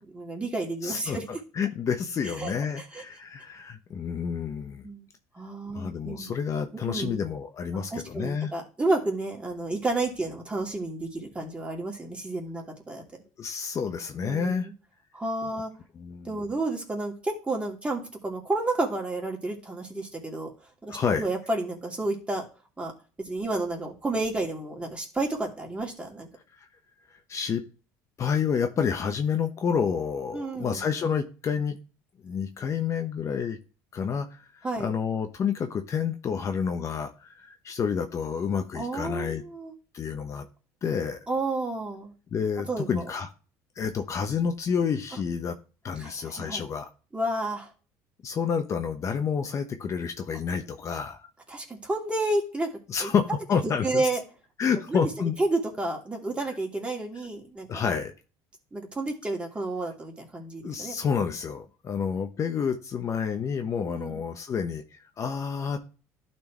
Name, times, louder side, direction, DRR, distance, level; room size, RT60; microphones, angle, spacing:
voice 1, 0.0-1.2 2.4-2.5 2.8-3.0 4.8-5.1 5.3-6.3 6.7-7.2 7.7-13.0 14.2-14.5 15.1-15.7 16.2-20.5 20.8-22.4 22.8-22.9 23.2-26.3 30.3-30.8 34.6-34.9 38.7-39.7 41.3-42.1 42.7-43.1 46.0-46.6 47.1-47.7 51.5-52.7 53.0-53.1 53.8-54.2 54.9-55.1 55.4-57.8 58.7-61.0 63.9-64.2, right 2 dB, 15° right, -1 dB, 2.8 m, -31 dB
voice 2, 0.8-4.8 5.7-8.5 13.4-14.7 16.0-16.4 20.9-21.2 26.6-26.7 27.3-27.6 28.2-31.8 32.2-33.6 33.9-39.4 39.9-40.5 40.8-41.2 42.3-43.3 43.8-45.5 45.8-46.9 48.2-51.3 52.9-54.1 54.6-55.4 57.7-58.1 60.6-65.8, left 6 dB, 40° left, 6 dB, 1.0 m, -29 dB
12.0 x 4.5 x 3.0 m, 0.35 s
supercardioid pair, 95°, 8 cm